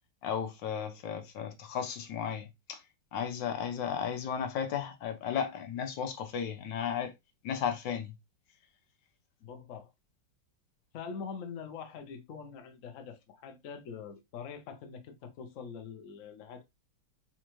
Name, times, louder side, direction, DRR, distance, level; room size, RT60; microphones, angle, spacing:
voice 1, 0.2-2.8 3.1-7.1 7.4-8.1, left 8 dB, 80° left, 1.4 m, -34 dB
voice 2, 9.4-9.9 10.9-16.6, left 6 dB, 60° left, 0.9 m, -44 dB
4.3 x 2.5 x 3.0 m
omnidirectional pair, 2.0 m